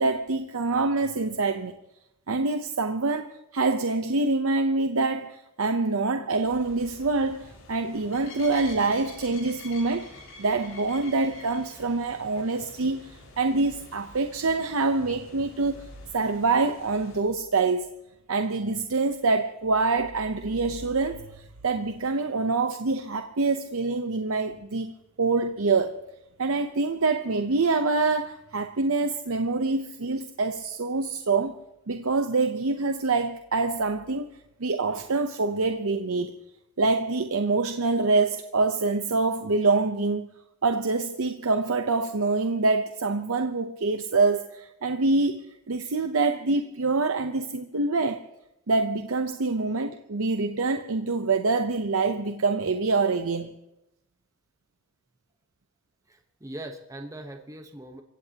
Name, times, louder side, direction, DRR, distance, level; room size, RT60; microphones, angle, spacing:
voice 1, 0.0-1.7 2.3-17.9 18.3-24.9 25.2-26.0 26.4-31.6 31.9-34.3 34.6-36.3 36.8-40.3 40.6-48.2 48.7-53.5, right 3 dB, 90° right, 0.8 m, -25 dB
sound 1, 6.4-17.2, left 2 dB, 70° left, 5.3 m, -48 dB
voice 2, 56.1-58.0, right 1 dB, 15° right, 1.1 m, -41 dB
28.5 x 16.0 x 2.9 m
head